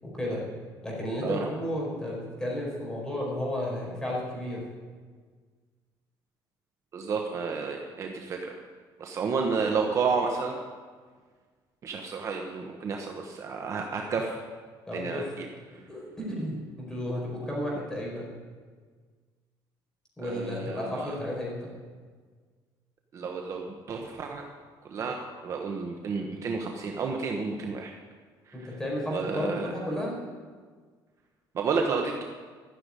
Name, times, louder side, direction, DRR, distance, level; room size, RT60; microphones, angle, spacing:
voice 1, 0.0-0.4 0.8-4.6 14.9-15.2 15.9-18.3 20.2-21.7 28.5-30.2, left 1 dB, 5° left, -4 dB, 4.9 m, -33 dB
voice 2, 6.9-8.5 9.0-10.6 11.8-14.4 14.9-15.5 20.2-21.2 23.1-24.5 24.8-27.9 28.5-28.8 29.1-29.7 31.5-32.2, right 5 dB, 40° right, 2 dB, 1.1 m, -31 dB
13.5 x 7.0 x 9.7 m, 1.5 s
cardioid pair, 145°, 8 cm